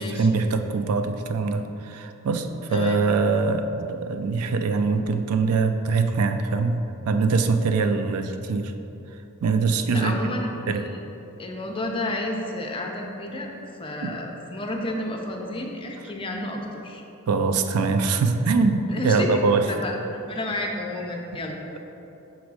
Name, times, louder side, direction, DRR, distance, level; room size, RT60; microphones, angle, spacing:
voice 1, 0.0-6.8 7.1-8.7 9.4-10.3 10.7-10.8 14.0-14.2 17.3-19.7, right 4 dB, 90° right, 8 dB, 0.4 m, -23 dB
voice 2, 2.7-3.1 9.9-10.5 10.8-11.0 11.4-13.5 13.8-17.0 18.9-19.4 19.7-21.8, left 1 dB, 25° left, 1 dB, 0.6 m, -31 dB
6.1 x 3.5 x 4.8 m, 2.9 s
head